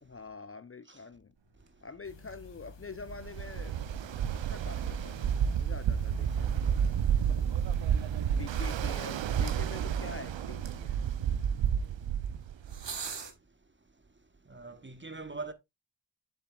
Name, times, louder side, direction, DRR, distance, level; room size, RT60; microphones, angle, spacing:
voice 1, 0.0-1.3 1.8-3.8 4.3-6.9 8.4-11.0, left 4 dB, 30° left, 0.5 m, -46 dB
sound 1, 1.4-13.3, right 5 dB, 70° right, 1.4 m, -50 dB
sound 2, 2.0-9.4, left 3 dB, 75° left, 1.5 m, -52 dB
Ocean, 3.1-13.0, right 8 dB, 90° right, 0.6 m, -30 dB
voice 2, 11.6-12.3 14.4-15.5, right 3 dB, 25° right, 1.1 m, -45 dB
7.4 x 7.2 x 2.3 m
cardioid pair, 45°, 44 cm